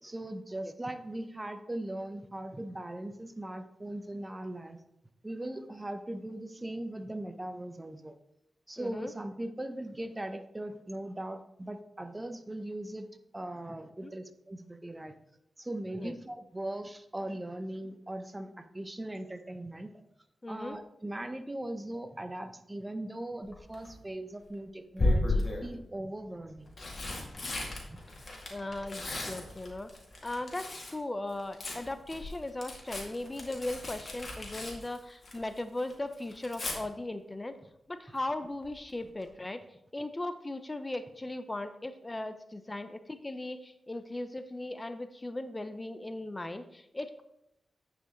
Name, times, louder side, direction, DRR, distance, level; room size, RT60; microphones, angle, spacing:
voice 1, 0.0-4.8 5.2-8.1 8.7-13.1 13.3-15.1 15.6-19.9 20.5-26.7 27.9-28.0, right 1 dB, 20° right, 9 dB, 0.9 m, -39 dB
voice 2, 8.8-9.1 14.0-14.1 16.0-16.1 20.4-20.8 28.5-29.9 30.2-37.6 37.9-39.6 39.9-47.2, left 2 dB, 25° left, 10 dB, 0.6 m, -38 dB
Tearing, 23.5-23.9 25.0-25.7 26.5-31.0 31.3-35.6 35.9-36.8 38.6-38.9 39.2-39.3, left 2 dB, 50° left, 2.2 m, -35 dB
9.7 x 5.2 x 3.8 m, 0.80 s
cardioid pair, 45°, 0 cm